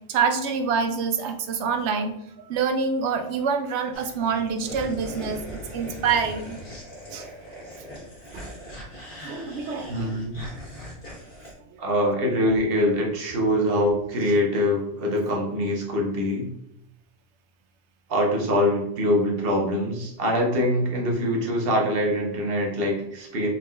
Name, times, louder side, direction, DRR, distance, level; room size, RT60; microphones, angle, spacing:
voice 1, 0.1-2.2 2.4-6.6 7.1-7.3 8.3-8.4 9.2-9.9, right 5 dB, 80° right, 7 dB, 0.9 m, -26 dB
sound 1, 3.9-11.5, equal, 55° left, 1.7 m, -40 dB
voice 2, 9.9-10.4 11.8-16.5 18.1-23.5, equal, 55° right, -1 dB, 1.2 m, -24 dB
4.1 x 3.8 x 2.5 m, 0.80 s
omnidirectional pair, 1.2 m